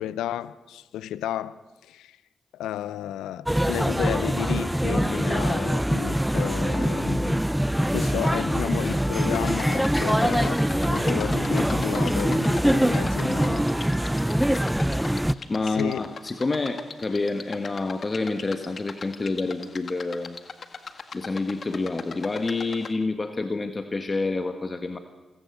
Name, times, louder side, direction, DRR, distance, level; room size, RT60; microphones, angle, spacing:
voice 1, 0.0-2.2 2.5-7.4 7.9-13.7 15.7-16.0, left 12 dB, 85° left, 0.6 m, -32 dB
sound 1, 3.5-15.3, equal, 5° right, 0.7 m, -23 dB
sound 2, 9.3-22.9, left 5 dB, 55° left, 1.7 m, -40 dB
voice 2, 15.5-20.4 21.1-25.0, left 3 dB, 40° left, 1.7 m, -28 dB
26.0 x 15.5 x 8.1 m
supercardioid pair, 40°, 0 cm